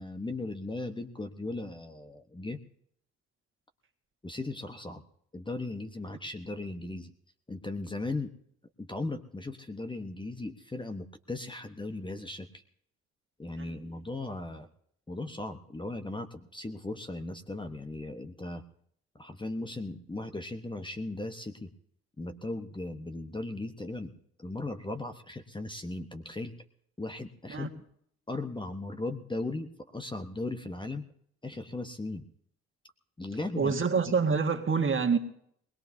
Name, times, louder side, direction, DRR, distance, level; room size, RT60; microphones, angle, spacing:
voice 1, 0.0-2.6 4.2-5.0 5.3-7.1 7.5-8.3 8.8-12.6 13.4-14.7 15.1-18.6 19.1-21.7 22.2-26.5 27.0-27.7 28.3-31.1 31.4-32.2 33.2-33.7 34.1-34.2, left 2 dB, 15° left, 1.1 m, -37 dB
voice 2, 33.6-35.2, right 5 dB, 35° right, 1.7 m, -26 dB
21.0 x 20.5 x 2.8 m
hypercardioid pair, 55°, 34 cm